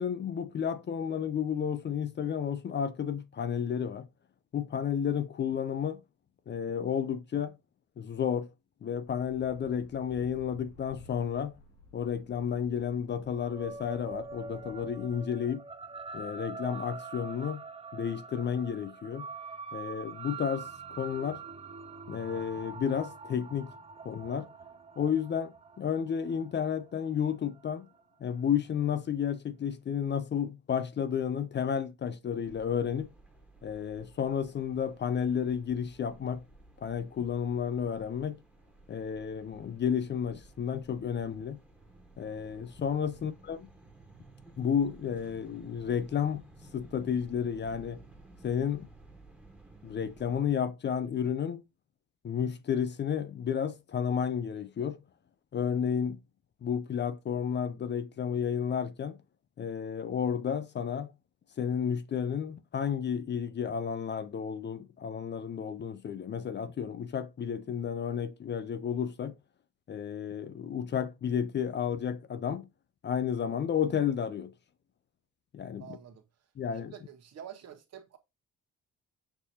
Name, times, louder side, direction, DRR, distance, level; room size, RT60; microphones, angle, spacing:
voice 1, 0.0-4.1 4.5-6.0 6.5-7.6 8.0-8.5 8.8-11.5 11.9-15.6 16.1-17.6 17.9-19.3 19.7-21.4 22.1-23.7 24.0-24.5 25.0-27.9 28.2-33.1 33.6-36.4 36.8-38.4 38.9-41.6 42.2-43.7 44.6-46.4 46.7-48.0 48.4-48.9 49.8-51.6 52.2-55.0 55.5-56.2 56.6-59.2 59.6-61.1 61.6-69.3 69.9-72.7 73.0-74.5 75.5-75.9 76.6-76.9, left 8 dB, 35° left, 0.4 m, -32 dB
sound 1, 9.1-15.2, left 1 dB, 90° left, 2.8 m, -55 dB
sound 2, 13.3-28.0, right 4 dB, 20° right, 0.4 m, -44 dB
sound 3, 32.4-50.4, right 2 dB, 5° right, 1.2 m, -56 dB
voice 2, 75.8-76.2 76.6-78.2, right 9 dB, 60° right, 1.0 m, -48 dB
6.6 x 2.8 x 2.7 m
cardioid pair, 90°, 30 cm